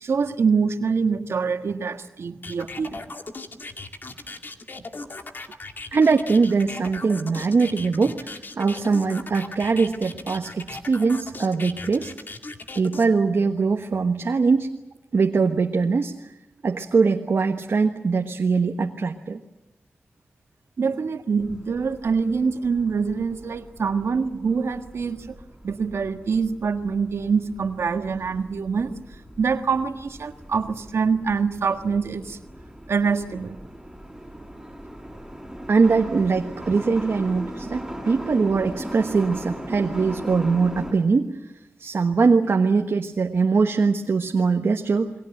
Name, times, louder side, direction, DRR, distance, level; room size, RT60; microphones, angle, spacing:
voice 1, 0.0-3.0 20.8-25.4 25.6-28.9 29.4-32.4 32.9-33.6, right 5 dB, 80° right, 7 dB, 1.6 m, -25 dB
sound 1, 2.4-13.1, left 3 dB, 50° left, 2.2 m, -38 dB
voice 2, 5.9-12.1 12.7-14.7 15.1-16.1 16.6-19.4 35.7-41.4 41.8-45.1, right 4 dB, 65° right, 3 dB, 1.3 m, -22 dB
sound 2, 21.4-40.9, equal, 5° right, 6.8 m, -39 dB
29.0 x 22.0 x 7.9 m, 0.93 s
wide cardioid pair, 75°, 4 cm